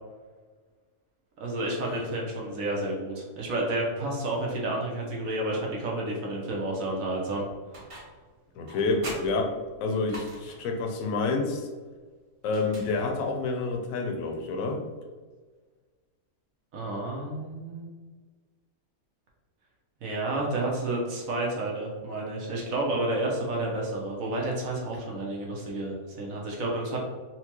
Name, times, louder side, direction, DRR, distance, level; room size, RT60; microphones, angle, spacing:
voice 1, 1.4-7.4 16.7-17.9 20.0-27.0, right 2 dB, 75° right, -2 dB, 1.1 m, -30 dB
sound 1, 7.7-8.3 8.7-10.8 12.4-13.4, right 1 dB, 40° right, 0.4 m, -43 dB
voice 2, 8.6-9.5 9.8-11.7 12.4-14.8, left 3 dB, 75° left, 3 dB, 1.0 m, -28 dB
4.3 x 2.2 x 2.9 m, 1.4 s
omnidirectional pair, 1.5 m